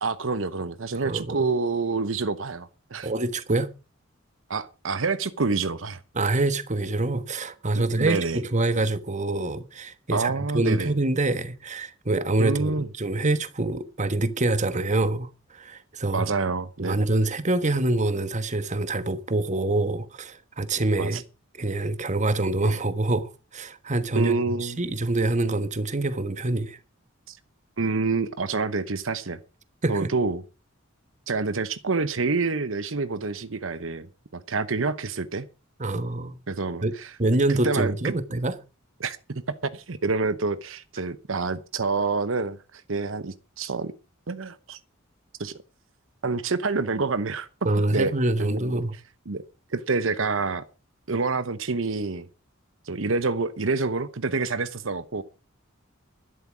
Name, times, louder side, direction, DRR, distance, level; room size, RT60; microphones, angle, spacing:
voice 1, 0.0-3.1 4.5-6.0 7.7-8.4 10.1-10.9 12.4-12.9 16.1-17.0 21.0-21.2 24.2-24.8 27.3-27.4 27.8-29.4 29.9-30.4 31.3-35.5 36.5-37.1 37.5-38.1 39.0-39.2 39.6-43.9 44.3-44.8 45.4-45.6 46.2-47.5 47.9-48.1 48.4-48.8 49.3-49.4 49.7-50.6 51.1-52.3 52.8-55.2, right 4 dB, 70° right, 0.9 m, -27 dB
voice 2, 0.9-1.5 3.0-3.7 6.1-16.3 16.8-21.2 21.6-26.8 29.8-30.1 35.8-36.4 36.8-36.9 37.2-38.5 47.6-48.9, right 2 dB, 35° right, 1.3 m, -26 dB
12.5 x 11.0 x 6.1 m
head